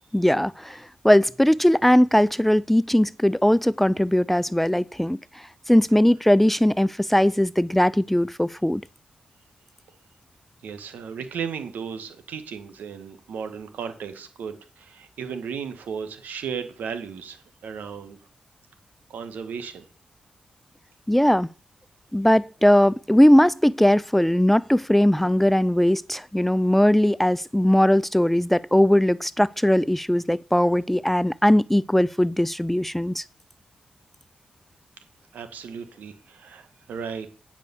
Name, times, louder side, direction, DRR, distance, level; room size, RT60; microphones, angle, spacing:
voice 1, 0.1-5.2 5.7-8.8 21.1-21.5 22.1-33.2, left 1 dB, 5° left, 0.3 m, -19 dB
voice 2, 10.6-18.2 19.1-19.9 35.3-37.3, right 6 dB, 85° right, 1.5 m, -35 dB
9.3 x 5.0 x 6.9 m
cardioid pair, 55°, 3 cm